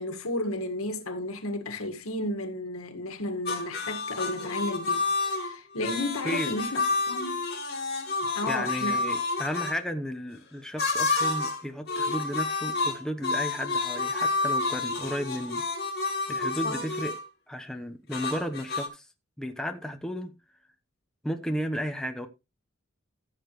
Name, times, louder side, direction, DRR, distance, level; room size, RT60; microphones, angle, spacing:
voice 1, 0.0-7.4 8.2-9.0 16.6-16.8, left 1 dB, 90° left, 2.0 m, -33 dB
sound 1, 3.5-9.7 10.8-11.6 11.9-17.2 18.1-18.9, left 3 dB, 50° left, 3.2 m, -29 dB
voice 2, 8.5-15.6 16.3-17.1 17.5-19.1 19.4-20.3 21.2-22.3, equal, 5° left, 1.0 m, -33 dB
15.0 x 7.3 x 3.2 m
head